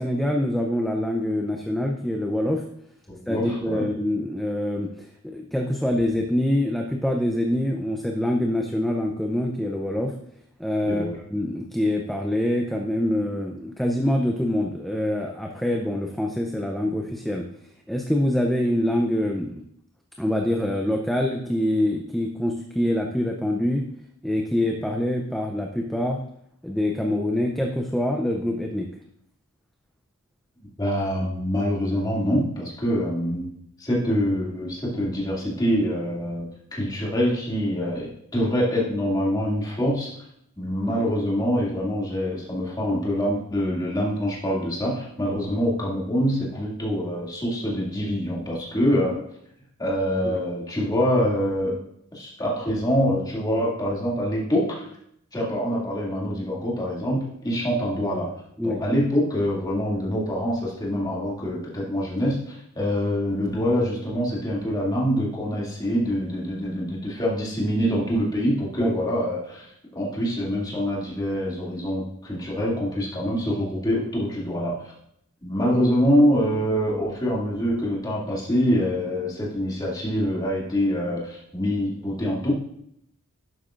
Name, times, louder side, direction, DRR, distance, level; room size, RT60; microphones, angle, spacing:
voice 1, 0.0-2.6 3.3-10.1 10.6-17.4 17.9-19.6 20.2-23.8 24.2-26.2 26.6-28.9 50.2-50.4 57.1-57.2 58.6-58.8 68.8-68.9, left 1 dB, ahead, 1 dB, 0.5 m, -25 dB
voice 2, 3.1-3.9 10.9-11.2 30.8-33.5 33.8-40.1 40.6-49.2 49.8-51.8 52.1-54.9 55.3-58.3 58.6-74.9 75.4-82.5, equal, 20° left, -5 dB, 2.4 m, -25 dB
11.0 x 8.2 x 2.5 m, 0.71 s
head